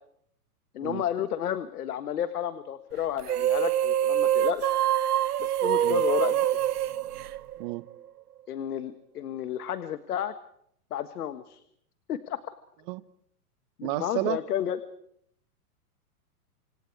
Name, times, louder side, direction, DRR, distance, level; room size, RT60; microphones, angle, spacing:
voice 1, 0.7-4.7 5.4-6.5 8.5-10.3 10.9-11.6 12.1-12.4 13.8-14.8, left 10 dB, 75° left, 11 dB, 1.6 m, -31 dB
sound 1, 3.2-7.9, right 11 dB, 75° right, 1.2 m, -25 dB
voice 2, 13.8-14.4, right 20 dB, 35° right, 15 dB, 1.0 m, -31 dB
29.5 x 26.5 x 4.8 m, 0.69 s
hypercardioid pair, 135°, 46 cm